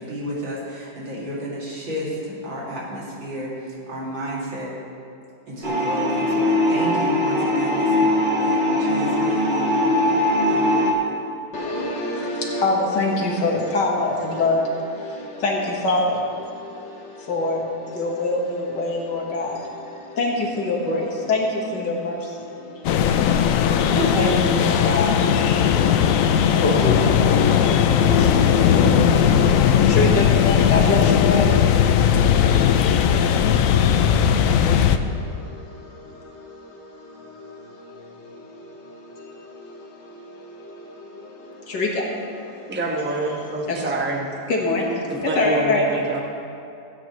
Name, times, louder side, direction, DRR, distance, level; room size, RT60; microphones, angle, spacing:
voice 1, 0.0-4.7 5.5-10.2 10.5-10.9, equal, 85° right, -6 dB, 3.2 m, -32 dB
sound 1, 5.6-10.9, left 1 dB, 30° right, 1.2 m, -20 dB
voice 2, 11.5-42.8 43.7-43.9 44.5-45.9, left 2 dB, 70° left, -2 dB, 2.1 m, -27 dB
sound 2, 22.8-35.0, left 8 dB, 85° left, 0.7 m, -17 dB
voice 3, 42.7-44.3 45.1-46.2, right 2 dB, 10° right, 0 dB, 0.8 m, -26 dB
17.0 x 8.9 x 3.1 m, 2.5 s
omnidirectional pair, 2.0 m